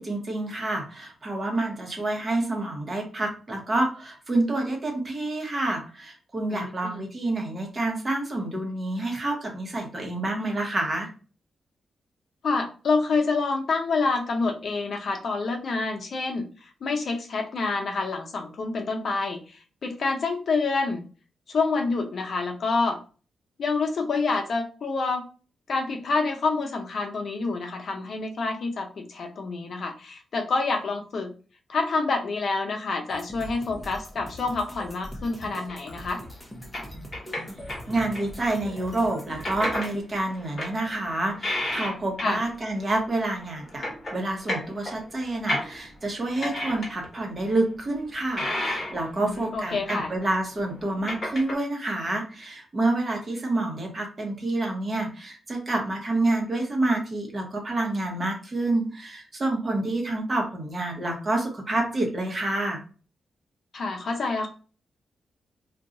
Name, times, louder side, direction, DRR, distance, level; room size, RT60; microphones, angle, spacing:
voice 1, 0.0-11.1 37.9-43.9 44.1-62.8, right 2 dB, 30° right, 1 dB, 0.9 m, -28 dB
voice 2, 6.5-7.0 12.4-21.0 21.5-23.0 23.6-25.3 25.7-31.3 31.7-36.2 42.2-42.4 49.1-50.1 63.7-64.5, left 3 dB, 55° left, 4 dB, 0.5 m, -27 dB
sound 1, 33.1-40.0, equal, 10° left, 0.7 m, -42 dB
sound 2, 35.7-35.9 36.7-38.4 39.4-39.9 40.4-42.5 42.8-42.9 43.4-46.0 46.4-47.2 47.5-47.6 48.4-49.2 49.5-50.4 50.7-51.6, left 1 dB, 35° left, 1.0 m, -32 dB
2.5 x 2.3 x 3.9 m, 0.37 s
wide cardioid pair, 135°, 0 cm